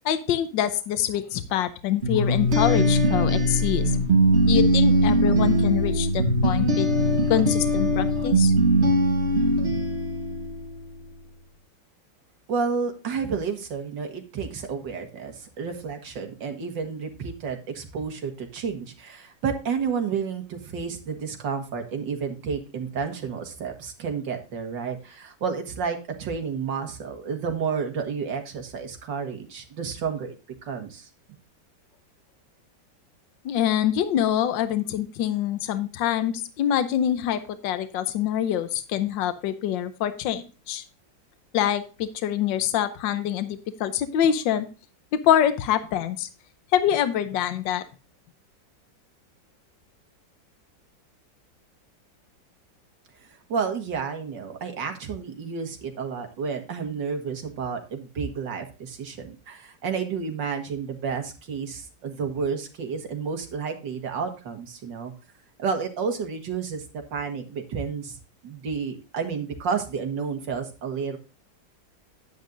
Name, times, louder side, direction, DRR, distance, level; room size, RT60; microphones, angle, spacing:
voice 1, 0.0-3.8 4.5-6.9 7.3-8.5 33.4-40.8 41.5-44.7 45.2-46.3 46.7-47.8, left 10 dB, 80° left, 11 dB, 1.5 m, -25 dB
sound 1, 2.0-10.7, right 1 dB, 40° right, 1.3 m, -21 dB
voice 2, 12.5-30.4 30.6-31.1 53.5-65.1 65.6-66.8 67.1-68.2 68.4-71.2, right 6 dB, 75° right, 5 dB, 2.2 m, -31 dB
10.5 x 9.2 x 2.5 m, 0.32 s
omnidirectional pair, 2.0 m